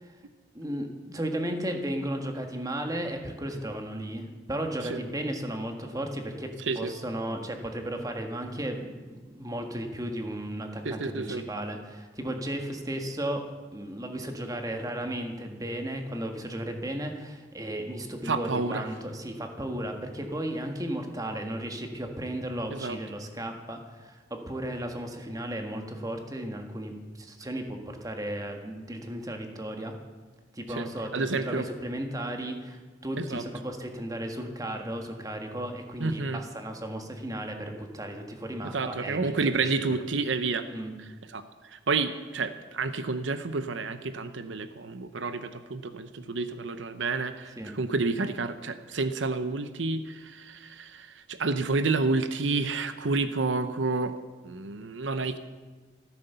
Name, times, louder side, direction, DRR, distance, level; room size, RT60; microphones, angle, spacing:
voice 1, 0.5-13.4 13.7-29.9 30.5-39.7 40.7-40.9 47.6-47.8, right 1 dB, 20° right, 4 dB, 1.7 m, -35 dB
voice 2, 6.6-6.9 10.8-11.4 18.2-18.8 22.7-23.0 30.7-31.7 33.2-33.4 36.0-36.4 38.6-40.7 41.0-54.1 54.4-55.4, right 3 dB, 80° right, 10 dB, 0.8 m, -30 dB
14.0 x 13.0 x 6.8 m, 1.3 s
head